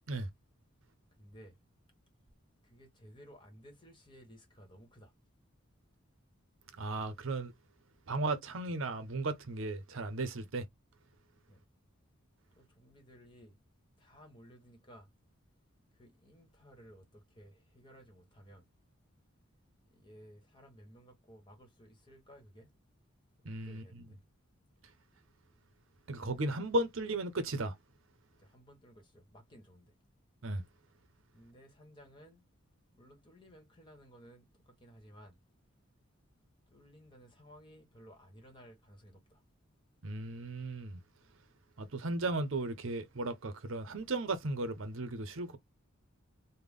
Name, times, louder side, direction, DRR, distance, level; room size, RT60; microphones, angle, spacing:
voice 1, 1.2-1.6 2.6-5.1 11.5-11.6 12.5-13.6 14.0-15.1 16.0-18.7 19.9-22.7 23.6-24.2 28.4-29.9 31.3-32.4 32.9-35.4 36.7-39.4, equal, 25° left, 1.3 m, -57 dB
voice 2, 6.8-7.5 8.1-10.7 23.4-24.1 26.1-27.8 30.4-30.6 40.0-41.0 41.8-45.6, right 2 dB, 65° right, 0.7 m, -35 dB
3.4 x 2.1 x 3.5 m
head